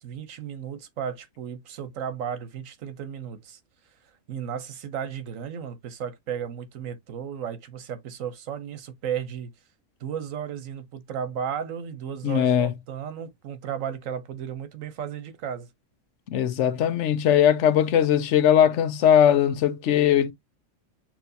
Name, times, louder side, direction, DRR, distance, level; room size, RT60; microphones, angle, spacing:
voice 1, 0.0-3.6 4.3-9.5 10.0-15.7, right 8 dB, 80° right, 1.2 m, -34 dB
voice 2, 12.2-12.7 16.3-20.3, left 9 dB, 70° left, 1.0 m, -20 dB
6.0 x 3.2 x 2.7 m
omnidirectional pair, 1.3 m